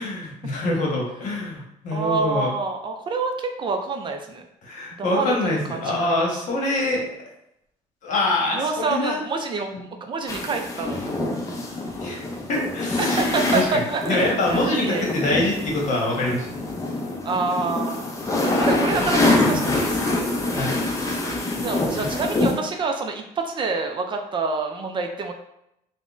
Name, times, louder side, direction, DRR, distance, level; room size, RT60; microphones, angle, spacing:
voice 1, 0.0-2.5 4.6-7.1 8.0-9.2 9.7-9.8 12.0-12.2 12.5-13.2 13.5-16.6 20.5-20.8 21.9-22.1, left 2 dB, 60° left, -2 dB, 1.0 m, -25 dB
voice 2, 1.9-4.4 5.0-6.4 8.5-9.7 10.0-11.1 13.0-14.2 14.5-15.1 17.2-18.1 18.6-20.0 21.1-21.2 21.5-25.3, right 4 dB, 35° right, 4 dB, 0.4 m, -27 dB
sound 1, 10.3-22.5, left 2 dB, 20° left, 0.5 m, -25 dB
3.5 x 2.1 x 2.4 m, 0.79 s
cardioid pair, 110°, 14 cm